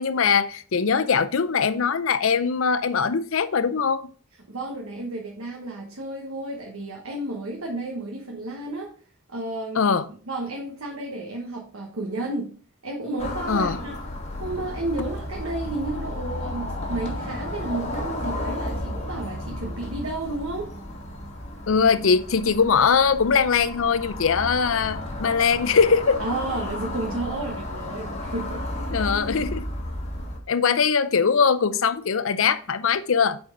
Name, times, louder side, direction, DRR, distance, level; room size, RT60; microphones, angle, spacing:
voice 1, 0.0-4.1 9.8-10.1 13.5-13.8 21.7-26.2 28.9-29.7 30.5-33.4, left 6 dB, 65° left, 0.6 m, -21 dB
voice 2, 4.5-8.9 9.3-9.9 10.2-12.5 12.8-13.9 14.4-20.6 26.2-28.7, right 2 dB, 80° right, 1.3 m, -32 dB
sound 1, 13.2-30.4, left 1 dB, 30° left, 1.6 m, -33 dB
8.5 x 4.5 x 3.8 m
head